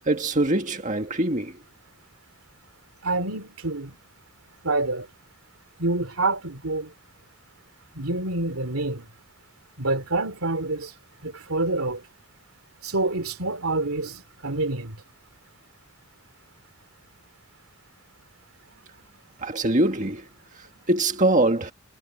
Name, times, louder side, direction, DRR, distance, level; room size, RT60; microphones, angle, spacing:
voice 1, 0.1-1.5 19.4-20.2 20.9-21.7, right 2 dB, 35° right, 1.8 m, -23 dB
voice 2, 3.0-3.9 4.6-5.0 5.8-6.9 7.9-9.1 9.8-10.9 11.2-12.0 12.8-14.9, right 2 dB, 85° right, 3.2 m, -27 dB
head